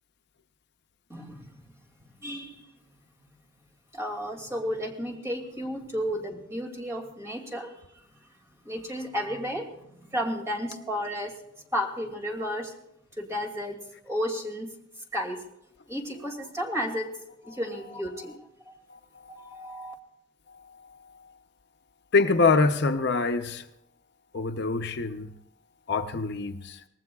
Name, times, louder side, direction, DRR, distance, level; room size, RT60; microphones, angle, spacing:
voice 1, 1.1-1.7 2.2-2.6 3.9-8.0 8.6-11.4 11.7-12.7 13.2-14.7 15.1-15.4 15.9-17.1 17.4-18.8 19.3-19.9, equal, 15° right, 2.4 m, -33 dB
voice 2, 18.9-19.5 22.1-23.6 24.3-25.3 25.9-26.8, left 4 dB, 60° left, 0.7 m, -25 dB
24.5 x 19.0 x 2.4 m
head